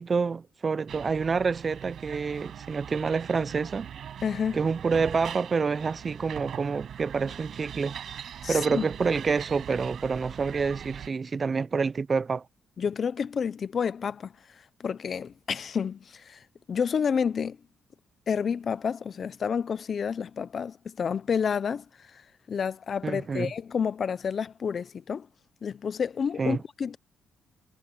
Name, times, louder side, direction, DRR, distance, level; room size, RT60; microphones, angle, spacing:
voice 1, 0.0-3.9 4.5-7.9 8.5-12.4 23.0-23.5 26.4-26.6, right 5 dB, 35° right, 0.6 m, -27 dB
sound 1, 0.9-11.1, right 9 dB, 65° right, 7.2 m, -41 dB
voice 2, 4.2-4.6 8.4-8.9 12.8-14.3 14.8-16.4 16.7-17.6 18.3-21.9 22.1-22.2 22.5-25.3 25.6-27.0, left 6 dB, 50° left, 0.8 m, -29 dB
cardioid pair, 90°, 0 cm